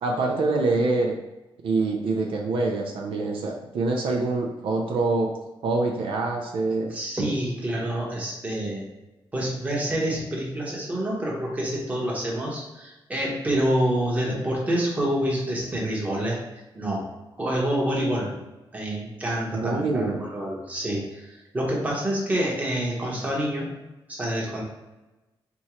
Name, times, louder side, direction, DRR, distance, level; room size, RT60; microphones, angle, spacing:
voice 1, 0.0-1.2 1.6-5.3 5.6-7.1 19.5-20.2, right 3 dB, 75° right, 0 dB, 0.6 m, -25 dB
voice 2, 6.9-8.8 9.3-16.4 16.7-17.1 17.4-18.3 18.7-23.7 24.1-24.6, right 1 dB, 15° right, -3 dB, 1.0 m, -27 dB
4.3 x 3.5 x 3.0 m, 1.1 s
wide cardioid pair, 175°, 9 cm